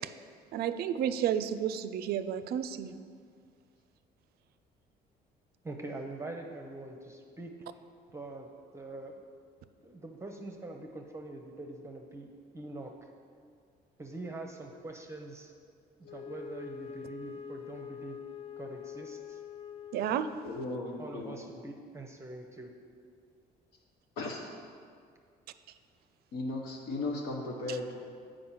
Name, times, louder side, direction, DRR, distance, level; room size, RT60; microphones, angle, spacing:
voice 1, 0.5-3.0 19.9-20.3, right 9 dB, 70° right, 12 dB, 0.4 m, -31 dB
voice 2, 5.6-7.5 8.1-8.5 8.7-9.2 9.8-12.3 12.5-12.9 14.0-15.5 16.1-18.2 18.6-19.4 21.0-22.7, right 2 dB, 15° right, 2 dB, 0.7 m, -43 dB
Wind instrument woodwind instrument, 16.0-20.6, left 8 dB, 35° left, 0.4 m, -45 dB
voice 3, 20.4-21.4 24.2-24.5 26.3-28.1, left 2 dB, 75° left, -1 dB, 0.9 m, -36 dB
7.7 x 5.0 x 5.7 m, 2.2 s
cardioid pair, 110°, 17 cm